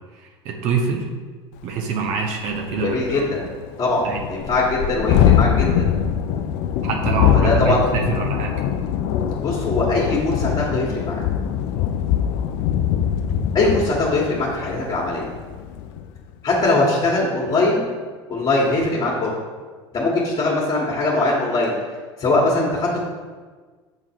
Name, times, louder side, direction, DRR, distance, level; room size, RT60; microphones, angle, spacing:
voice 1, 0.4-1.1 1.6-3.3 4.0-4.2 6.8-8.5, right 5 dB, 55° right, 2 dB, 0.9 m, -25 dB
Thunderstorm, 1.6-1.7 2.1-2.2 2.5-16.1, left 9 dB, 60° left, 0.5 m, -23 dB
voice 2, 2.8-3.4 3.8-5.9 7.3-7.8 9.4-11.2 13.5-15.3 16.4-17.9 18.3-19.3 19.9-21.7 22.2-23.0, left 2 dB, 35° left, -5 dB, 1.8 m, -21 dB
7.8 x 3.8 x 4.6 m, 1.5 s
hypercardioid pair, 70°, 14 cm